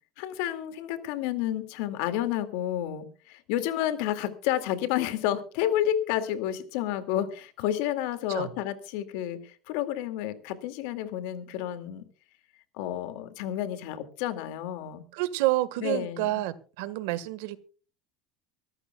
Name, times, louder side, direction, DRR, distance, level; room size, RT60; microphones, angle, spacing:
voice 1, 0.2-12.0 12.7-15.0 15.8-16.4, left 11 dB, 65° left, 10 dB, 2.2 m, -30 dB
voice 2, 15.1-17.6, right 17 dB, 75° right, 14 dB, 1.5 m, -29 dB
25.0 x 14.0 x 2.3 m, 0.37 s
cardioid pair, 180°, 0 cm